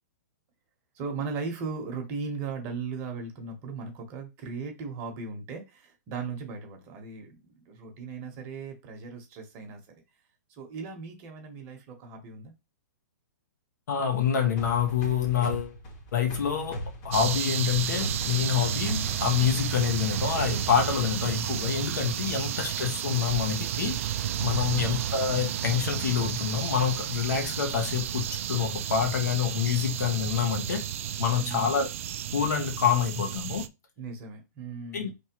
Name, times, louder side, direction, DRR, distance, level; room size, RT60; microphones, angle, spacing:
voice 1, 0.9-9.8 10.5-12.5 24.5-24.9 31.3-31.7 34.0-35.1, right 4 dB, 25° right, 1.1 m, -37 dB
voice 2, 13.9-15.8 16.1-24.0 24.4-30.9 31.2-31.9 32.3-33.7 34.9-35.1, left 8 dB, 75° left, 1.4 m, -27 dB
sound 1, 14.6-21.3, right 1 dB, 30° left, 1.1 m, -39 dB
sound 2, 17.1-33.7, right 10 dB, 45° right, 0.4 m, -32 dB
4.5 x 3.4 x 3.0 m
hypercardioid pair, 165°, 10 cm